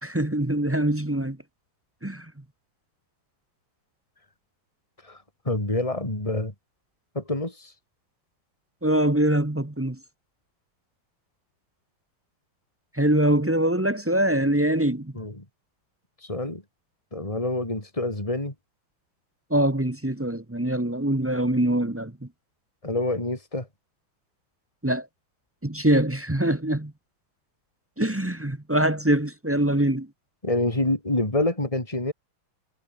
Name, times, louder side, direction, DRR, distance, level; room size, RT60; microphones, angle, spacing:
voice 1, 0.0-1.4 2.0-2.2 8.8-10.0 13.0-15.1 19.5-22.1 24.8-25.1 25.6-26.9 28.0-30.1, right 1 dB, 10° right, 0.8 m, -23 dB
voice 2, 5.0-6.5 7.1-7.7 15.1-15.4 16.2-16.6 17.1-18.5 22.8-23.7 30.4-32.1, left 2 dB, 15° left, 4.8 m, -27 dB
omnidirectional pair, 2.2 m